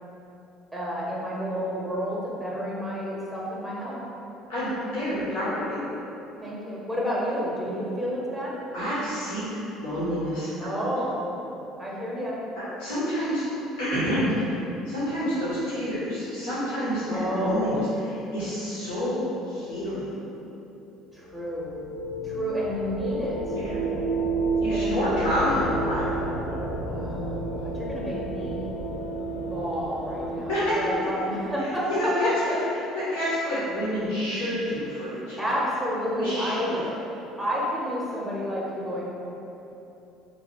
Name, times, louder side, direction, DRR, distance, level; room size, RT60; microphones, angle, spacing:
voice 1, 0.7-4.0 6.4-8.6 10.6-11.2 11.8-12.4 17.1-17.7 21.1-21.7 22.2-23.6 24.7-25.5 26.9-27.3 27.6-28.7 29.3-31.9 32.2-32.3 35.4-36.7 37.4-39.1, equal, 5° left, -6 dB, 0.8 m, -30 dB
voice 2, 4.5-5.8 8.7-9.4 9.7-10.8 12.8-13.4 13.8-14.3 14.8-20.2 23.5-23.9 24.6-26.1 30.5-30.8 31.6-32.6 32.9-35.4 36.1-36.9, equal, 70° left, -11 dB, 0.9 m, -28 dB
sound 1, 21.1-31.6, right 2 dB, 75° right, 0.5 m, -31 dB
2.8 x 2.4 x 4.1 m, 3.0 s
figure-of-eight pair, 60°, 0 cm